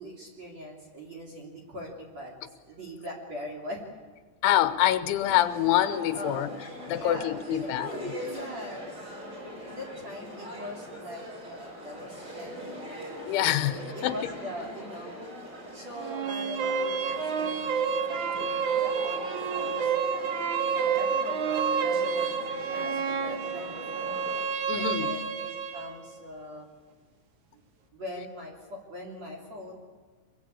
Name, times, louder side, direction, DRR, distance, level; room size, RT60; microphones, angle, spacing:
voice 1, 0.0-2.4 2.6-3.8 6.1-6.6 6.9-7.7 8.2-8.8 9.7-12.9 13.6-15.1 15.7-19.9 20.7-24.2 24.7-26.7 27.5-27.6 27.9-29.8, equal, 40° right, -2 dB, 3.9 m, -42 dB
voice 2, 4.4-6.5 6.9-8.0 13.3-14.2 18.4-18.5 24.7-25.2, left 12 dB, 85° left, 12 dB, 3.3 m, -26 dB
sound 1, 5.2-24.4, equal, 20° right, 8.4 m, -42 dB
sound 2, 16.0-25.9, right 6 dB, 60° right, 2.0 m, -29 dB
25.0 x 21.5 x 8.6 m, 1.4 s
omnidirectional pair, 5.4 m